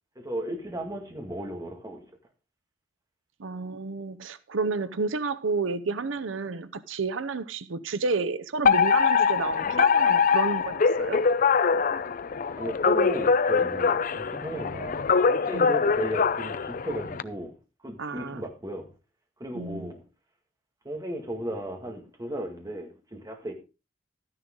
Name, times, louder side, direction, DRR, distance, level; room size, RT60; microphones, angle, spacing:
voice 1, 0.2-2.0 12.6-15.0 15.3-17.5 17.8-18.9 19.4-20.0 20.9-23.5, right 1 dB, 20° right, 2.0 m, -35 dB
voice 2, 3.4-11.2 15.5-15.7 18.0-18.4 19.5-19.9, right 4 dB, 90° right, 0.7 m, -31 dB
Alarm, 8.6-17.2, left 5 dB, 45° left, 0.5 m, -23 dB
13.0 x 10.0 x 3.8 m
head